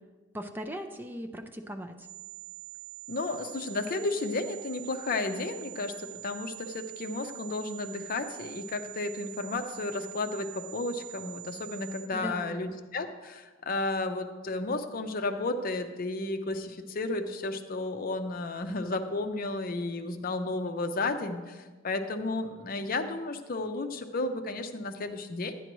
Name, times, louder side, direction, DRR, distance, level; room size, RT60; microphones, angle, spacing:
voice 1, 0.3-2.1 12.1-12.6, equal, 10° right, 4 dB, 0.4 m, -38 dB
sound 1, 2.0-12.0, right 20 dB, 15° left, 2.7 m, -45 dB
voice 2, 3.1-25.5, left 2 dB, 45° left, 8 dB, 0.6 m, -33 dB
12.0 x 9.9 x 3.0 m, 1.3 s
head